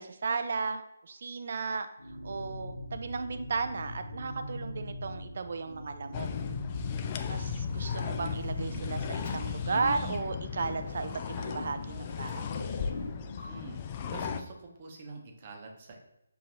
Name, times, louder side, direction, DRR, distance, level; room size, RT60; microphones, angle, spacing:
voice 1, 0.0-1.9 2.2-6.3 7.3-12.6, right 4 dB, 50° right, 9 dB, 0.4 m, -35 dB
sound 1, 2.0-9.9, left 1 dB, 90° left, 1.1 m, -41 dB
sound 2, 6.1-14.4, left 7 dB, 25° left, 0.3 m, -36 dB
sound 3, 7.8-13.6, left 3 dB, 45° left, 0.9 m, -42 dB
voice 2, 13.5-13.8 14.1-16.0, right 3 dB, 35° right, 1 dB, 0.8 m, -46 dB
6.5 x 2.8 x 2.6 m, 0.86 s
figure-of-eight pair, 150°, 0 cm